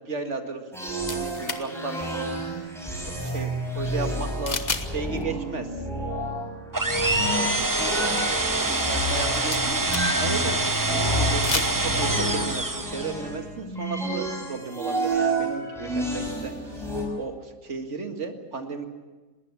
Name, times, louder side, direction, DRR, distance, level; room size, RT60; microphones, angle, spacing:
voice 1, 0.1-0.6 0.9-2.0 3.2-3.5 3.7-5.7 6.9-7.6 8.2-16.9 17.2-18.9, right 4 dB, 50° right, 5 dB, 2.2 m, -34 dB
sound 1, 0.7-17.0, right 1 dB, ahead, 6.2 m, -30 dB
sound 2, 1.1-1.6 4.5-4.9 5.2-5.3 9.1-10.3 11.3-11.7, left 3 dB, 30° left, 1.3 m, -30 dB
sound 3, 6.7-13.2, right 2 dB, 15° right, 0.8 m, -26 dB
20.5 x 18.5 x 8.5 m, 1.3 s
omnidirectional pair, 1.7 m